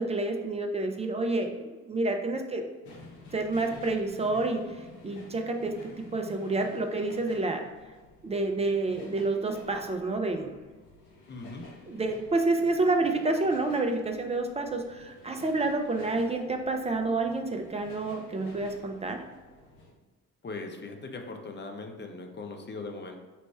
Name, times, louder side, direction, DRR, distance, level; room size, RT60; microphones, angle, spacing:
voice 1, 0.0-2.6 3.3-7.6 8.2-10.6 11.9-19.2, right 2 dB, 15° right, 4 dB, 0.3 m, -29 dB
sound 1, 2.8-19.9, left 2 dB, 85° left, 0.7 m, -51 dB
voice 2, 11.3-11.7 20.4-23.1, left 3 dB, 25° left, 3 dB, 0.6 m, -39 dB
4.3 x 2.0 x 3.3 m, 1.3 s
hypercardioid pair, 50°, 44 cm